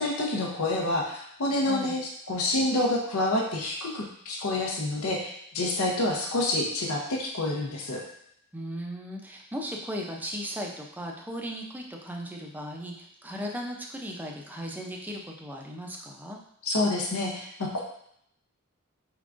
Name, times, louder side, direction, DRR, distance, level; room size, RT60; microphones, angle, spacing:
voice 1, 0.0-8.0 16.6-17.8, left 2 dB, 75° left, -1 dB, 0.7 m, -28 dB
voice 2, 8.5-16.4, equal, 10° right, 0 dB, 0.5 m, -37 dB
4.6 x 3.7 x 2.5 m, 0.71 s
head